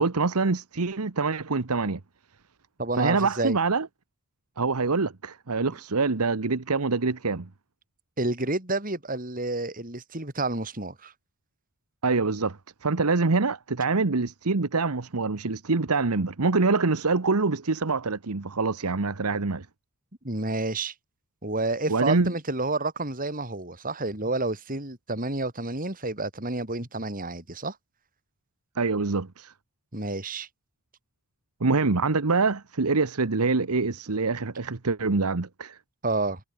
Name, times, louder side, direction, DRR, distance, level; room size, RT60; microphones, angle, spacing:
voice 1, 0.0-2.0 3.0-3.9 4.6-7.5 12.0-19.7 21.9-22.3 28.8-29.5 31.6-35.8, right 4 dB, 90° right, 1.1 m, -25 dB
voice 2, 2.8-3.6 8.2-11.1 20.2-20.9 21.4-27.8 29.9-30.5 36.0-36.4, right 2 dB, 40° right, 4.2 m, -29 dB
head